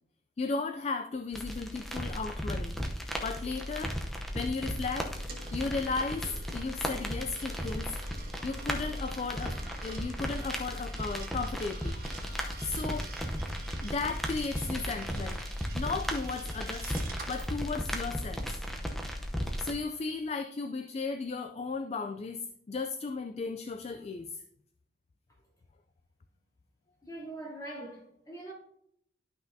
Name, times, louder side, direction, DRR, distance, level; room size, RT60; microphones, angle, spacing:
voice 1, 0.4-2.8 3.2-5.2 5.5-13.1 13.8-18.6 19.6-22.4 22.7-24.4, left 4 dB, 40° left, 0.3 m, -35 dB
sound 1, 1.3-19.7, equal, ahead, 0.8 m, -36 dB
Coin (dropping), 4.8-17.5, right 5 dB, 55° right, 1.5 m, -49 dB
voice 2, 27.0-28.5, right 1 dB, 20° left, 2.9 m, -42 dB
12.0 x 5.7 x 2.7 m
head